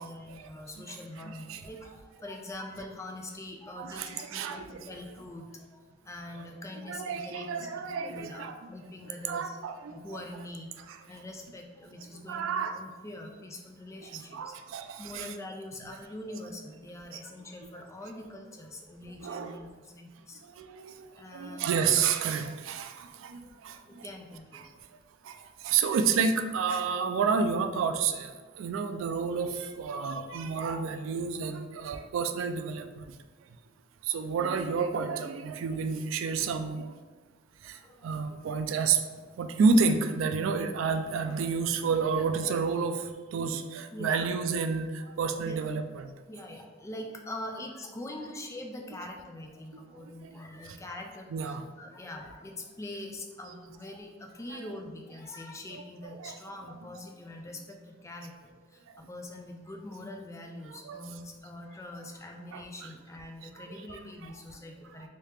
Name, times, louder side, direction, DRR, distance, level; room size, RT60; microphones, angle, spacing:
voice 1, 0.0-9.6 9.9-10.7 11.1-20.4 21.1-21.9 23.4-23.5 23.9-24.8 37.6-38.3 43.9-44.3 45.4-45.6 46.3-58.3 58.7-65.1, left 1 dB, 15° left, 2 dB, 0.3 m, -43 dB
voice 2, 1.2-1.6 3.8-4.8 6.9-8.5 9.3-10.2 12.3-12.7 14.1-15.3 19.2-19.6 20.6-21.1 21.3-23.7 24.5-24.6 25.3-25.4 25.6-28.3 28.6-33.0 34.1-36.9 38.0-39.0 39.4-42.9 43.3-44.9 45.2-46.1 51.3-51.6 54.5-54.6 55.7-56.4 60.9-61.0 62.5-62.9 63.7-64.0, right 5 dB, 90° right, 7 dB, 0.3 m, -30 dB
3.2 x 2.7 x 3.3 m, 1.4 s
head